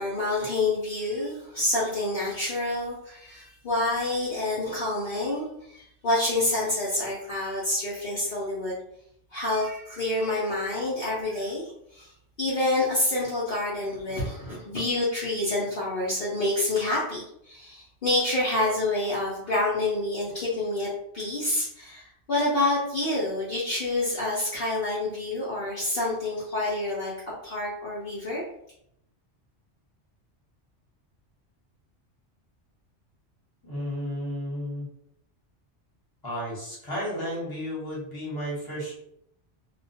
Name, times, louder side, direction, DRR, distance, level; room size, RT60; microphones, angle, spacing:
voice 1, 0.0-8.8 9.3-12.1 12.4-20.9 21.1-27.1 27.4-28.4, left 2 dB, 55° left, -7 dB, 0.7 m, -28 dB
voice 2, 33.6-34.9 36.2-38.9, equal, 20° left, -6 dB, 1.0 m, -33 dB
2.3 x 2.2 x 2.6 m, 0.75 s
omnidirectional pair, 1.2 m